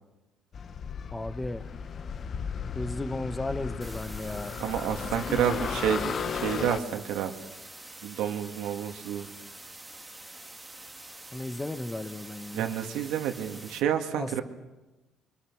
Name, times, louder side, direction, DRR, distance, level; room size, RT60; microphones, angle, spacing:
sound 1, 0.5-6.8, left 6 dB, 35° left, 0.8 m, -35 dB
voice 1, 1.1-1.7 2.7-4.6 5.3-5.6 11.3-12.6 14.2-14.4, left 2 dB, 10° left, 11 dB, 1.1 m, -34 dB
sound 2, 3.8-13.8, right 2 dB, 10° right, 1.9 m, -46 dB
voice 2, 4.6-7.3 8.0-9.3 12.5-14.4, right 9 dB, 85° right, 4 dB, 2.5 m, -29 dB
28.5 x 24.5 x 6.4 m, 1.1 s
cardioid pair, 170°, 0 cm